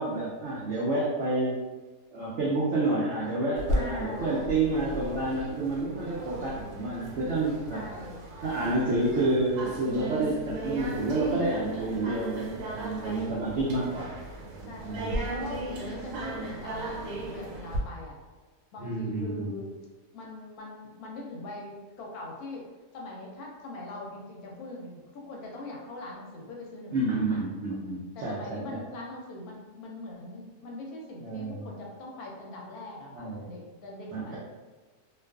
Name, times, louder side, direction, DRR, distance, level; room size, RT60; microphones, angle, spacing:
voice 1, 0.0-1.6 2.1-7.8 8.4-14.1 14.8-15.2 18.8-19.6 26.9-28.8 31.2-31.7 33.1-33.5 34.1-34.4, right 2 dB, 90° right, -6 dB, 0.6 m, -29 dB
sound 1, 3.6-17.8, right 1 dB, 75° right, 1.1 m, -36 dB
voice 2, 3.7-4.5 7.7-8.2 11.8-12.0 13.0-13.3 14.6-18.2 18.7-19.7 20.1-22.6 22.9-27.5 28.2-34.4, left 2 dB, 70° left, -1 dB, 1.0 m, -42 dB
2.5 x 2.3 x 2.3 m, 1.3 s
omnidirectional pair, 1.8 m